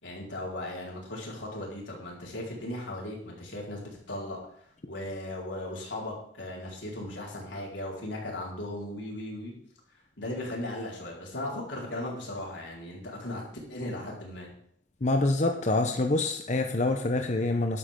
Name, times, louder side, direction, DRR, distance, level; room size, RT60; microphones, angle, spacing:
voice 1, 0.0-4.4 4.8-9.5 10.2-13.4 13.7-14.5, left 1 dB, 90° left, -3 dB, 4.6 m, -37 dB
voice 2, 15.0-17.8, left 2 dB, 40° left, 4 dB, 0.9 m, -26 dB
12.5 x 11.5 x 3.8 m, 0.66 s
head